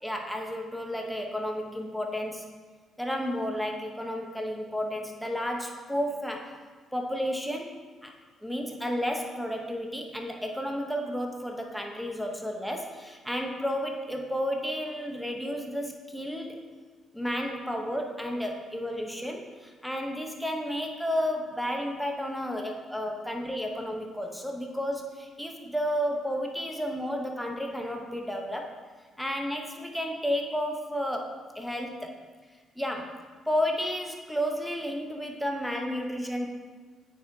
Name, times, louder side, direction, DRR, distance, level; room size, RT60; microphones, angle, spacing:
voice 1, 0.0-2.4 3.0-6.5 6.9-8.1 8.4-16.6 17.1-28.7 29.2-32.1 32.8-33.2 33.5-36.5, equal, ahead, 2 dB, 1.0 m, -32 dB
8.8 x 4.5 x 2.8 m, 1.5 s
hypercardioid pair, 45°, 0 cm